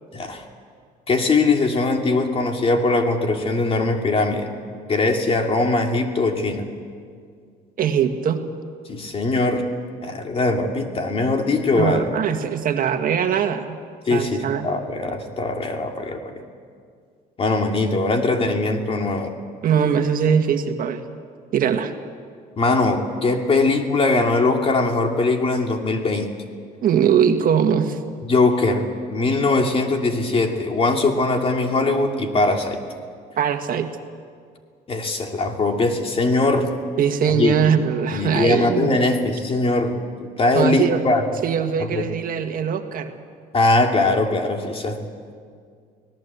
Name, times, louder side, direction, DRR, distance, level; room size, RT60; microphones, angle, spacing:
voice 1, 0.1-0.4 1.1-4.5 4.9-6.7 8.9-9.6 10.0-12.1 14.1-16.3 17.4-19.3 22.6-26.3 28.2-32.8 34.9-36.7 37.3-37.6 38.1-40.0 40.4-41.2 41.8-42.1 43.5-45.0, left 3 dB, 35° left, 3 dB, 2.7 m, -21 dB
voice 2, 7.8-8.4 11.7-13.8 14.1-14.7 19.6-21.0 21.5-21.9 26.8-28.0 33.4-33.9 37.0-39.0 40.6-41.0 41.4-43.2, right 8 dB, 55° right, 6 dB, 1.7 m, -21 dB
25.0 x 18.0 x 8.3 m, 2.1 s
cardioid pair, 110°, 17 cm